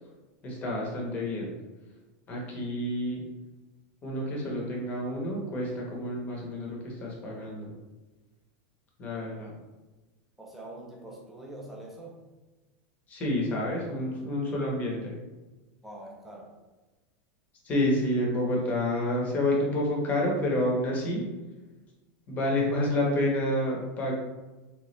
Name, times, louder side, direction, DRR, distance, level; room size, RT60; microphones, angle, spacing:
voice 1, 0.4-1.5 2.3-3.2 4.0-7.8 9.0-9.5 13.1-15.2 17.6-21.3 22.3-24.1, left 1 dB, 20° left, -2 dB, 0.8 m, -29 dB
voice 2, 10.4-12.2 15.8-16.6, right 1 dB, 5° right, -2 dB, 0.5 m, -44 dB
3.3 x 2.9 x 3.2 m, 1.2 s
supercardioid pair, 170°, 7 cm